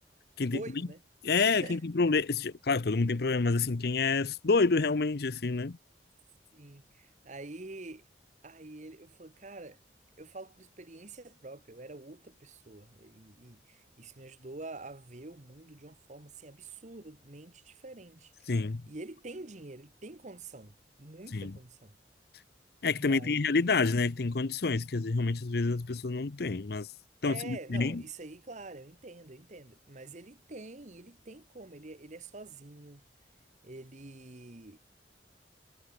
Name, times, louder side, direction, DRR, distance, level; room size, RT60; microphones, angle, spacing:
voice 1, 0.5-1.0 1.5-1.8 6.5-8.0 8.4-9.8 10.2-18.5 18.9-21.9 22.9-23.8 27.3-33.0 33.6-34.8, right 2 dB, 40° right, 1.2 m, -46 dB
voice 2, 1.2-5.8 18.5-18.8 21.3-21.5 22.8-26.9 27.2-28.0, left 4 dB, 60° left, 0.7 m, -28 dB
head